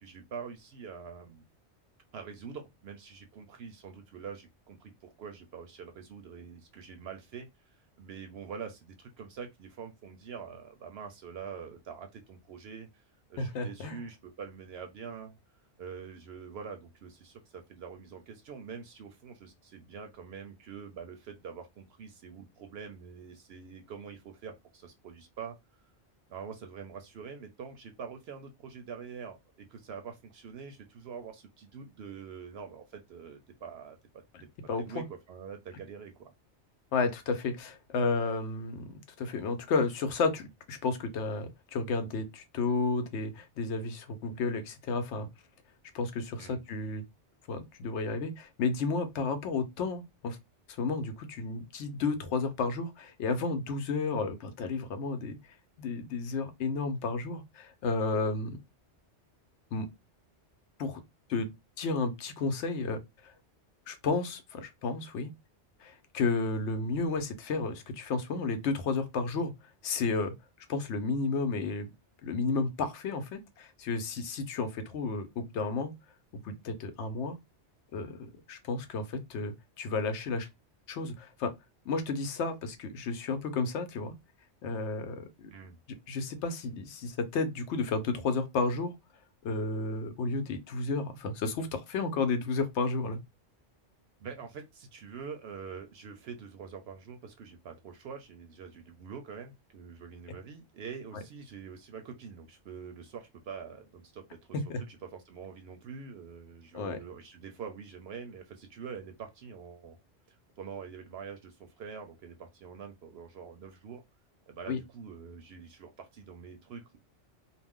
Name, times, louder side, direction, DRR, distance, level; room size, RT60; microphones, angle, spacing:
voice 1, 0.0-1.4 2.1-7.5 8.0-13.0 13.3-15.4 15.8-25.6 26.3-34.0 34.8-36.3 46.4-46.6 85.5-85.8 94.2-104.5 104.9-110.0 110.6-114.0 114.5-117.0, right 6 dB, 65° right, 0.7 m, -45 dB
voice 2, 13.4-14.0 34.3-34.4 34.7-35.0 36.9-45.3 45.9-47.0 47.5-50.4 50.8-55.4 55.8-58.6 59.7-59.9 60.8-61.0 61.3-61.5 61.8-63.3 63.9-65.3 65.8-69.5 69.8-70.3 70.7-71.9 72.2-75.9 76.4-77.4 77.9-80.5 80.9-81.5 81.9-84.1 84.6-85.5 86.1-89.0 89.4-93.2 101.1-101.2 104.7-104.8 106.7-107.0 114.7-114.8, left 4 dB, 80° left, 0.9 m, -32 dB
2.5 x 2.1 x 3.5 m
omnidirectional pair, 1.2 m